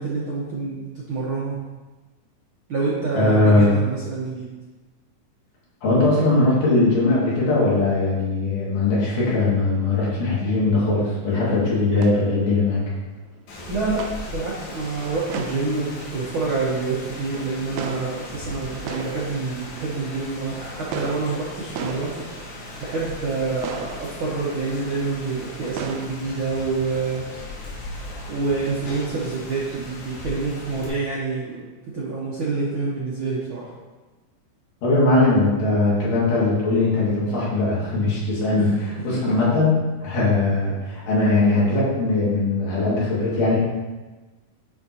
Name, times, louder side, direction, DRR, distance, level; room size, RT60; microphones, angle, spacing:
voice 1, 0.0-1.6 2.7-4.5 13.7-22.1 22.8-27.3 28.3-31.6 31.9-33.7 38.6-38.7, right 3 dB, 70° right, -6 dB, 1.2 m, -27 dB
voice 2, 3.1-3.8 5.8-12.8 34.8-43.6, left 2 dB, 90° left, -7 dB, 3.6 m, -20 dB
sound 1, 11.8-20.5 20.9-23.4 23.6-26.1, right 6 dB, 85° right, 2.1 m, -37 dB
Rain, 13.5-30.9, left 2 dB, 70° left, 2.6 m, -38 dB
10.5 x 4.7 x 2.8 m, 1.2 s
omnidirectional pair, 3.6 m